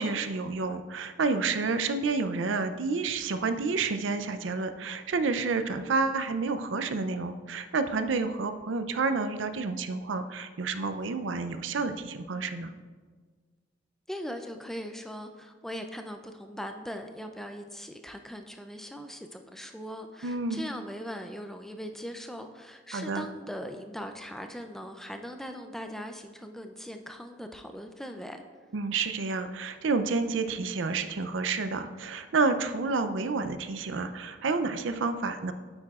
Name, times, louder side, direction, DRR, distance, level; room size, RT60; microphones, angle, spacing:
voice 1, 0.0-12.7 20.2-20.6 22.9-23.3 28.7-35.5, right 4 dB, 80° right, 10 dB, 0.5 m, -29 dB
voice 2, 14.1-28.4, equal, ahead, 5 dB, 0.4 m, -40 dB
8.8 x 8.7 x 2.4 m, 1.5 s
head